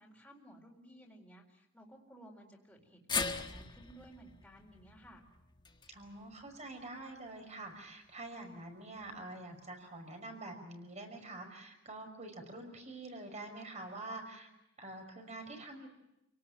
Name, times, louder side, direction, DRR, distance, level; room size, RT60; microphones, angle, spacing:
voice 1, 0.0-5.2, right 1 dB, 5° left, -3 dB, 4.2 m, -57 dB
sound 1, 3.1-7.4 7.7-7.8 9.0-9.1, left 4 dB, 20° left, 1.6 m, -41 dB
voice 2, 5.9-14.5 14.8-15.9, right 2 dB, 35° right, 5 dB, 5.6 m, -46 dB
29.0 x 18.5 x 9.1 m, 0.90 s
head